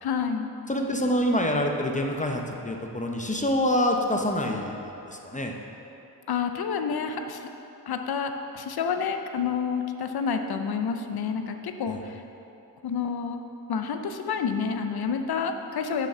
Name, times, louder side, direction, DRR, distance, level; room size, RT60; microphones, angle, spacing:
voice 1, 0.0-0.5 6.3-7.5 7.9-12.2 12.8-13.4 13.7-16.1, left 6 dB, 65° left, 6 dB, 0.7 m, -29 dB
voice 2, 0.7-4.8 5.1-5.5 11.9-12.0, left 1 dB, 20° left, 2 dB, 0.8 m, -26 dB
6.6 x 6.2 x 5.6 m, 2.9 s
cardioid pair, 65°, 40 cm